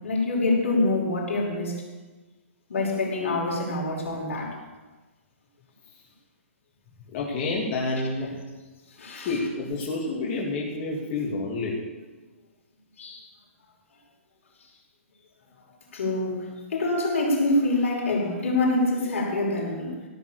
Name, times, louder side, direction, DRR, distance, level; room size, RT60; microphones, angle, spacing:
voice 1, 0.0-1.8 2.7-4.6 9.0-9.3 13.0-13.3 15.9-20.0, left 2 dB, 70° left, -2 dB, 5.3 m, -25 dB
voice 2, 7.1-8.3 9.2-11.8, left 3 dB, 35° left, -4 dB, 2.9 m, -28 dB
16.0 x 7.4 x 8.5 m, 1.2 s
hypercardioid pair, 150°, 7 cm